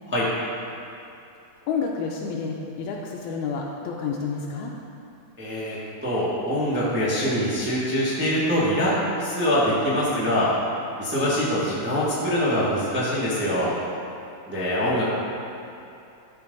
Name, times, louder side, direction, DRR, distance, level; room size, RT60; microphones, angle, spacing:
voice 1, 1.7-4.8, left 5 dB, 85° left, -1 dB, 2.0 m, -29 dB
voice 2, 5.4-5.8 6.0-8.9 9.2-10.5 11.0-13.7 14.5-15.0, equal, 5° right, -9 dB, 0.8 m, -24 dB
12.5 x 5.1 x 3.9 m, 2.7 s
omnidirectional pair, 3.4 m